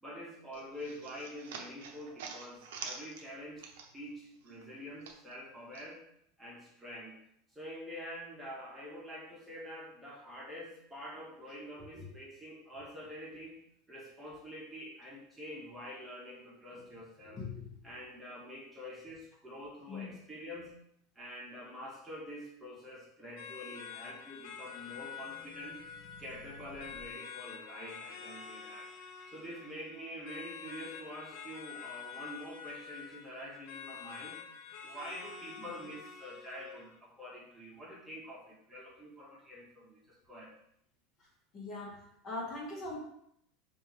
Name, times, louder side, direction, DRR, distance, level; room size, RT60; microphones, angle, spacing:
voice 1, 0.0-6.0 6.4-7.2 7.5-13.6 13.9-17.4 17.8-20.8 21.1-25.8 26.2-28.9 29.3-34.4 34.8-40.5, equal, 10° right, -5 dB, 1.3 m, -46 dB
sound 1, 0.5-4.2 4.4-5.9, right 5 dB, 80° right, 0.7 m, -47 dB
voice 2, 17.3-17.8 19.9-20.2 35.6-35.7 41.5-43.0, left 3 dB, 35° left, -2 dB, 1.4 m, -42 dB
sound 2, 23.4-36.9, left 7 dB, 60° left, 0.5 m, -48 dB
sound 3, 24.2-27.1, left 1 dB, 75° left, 0.9 m, -57 dB
5.3 x 2.7 x 3.2 m, 0.73 s
supercardioid pair, 115°, 0 cm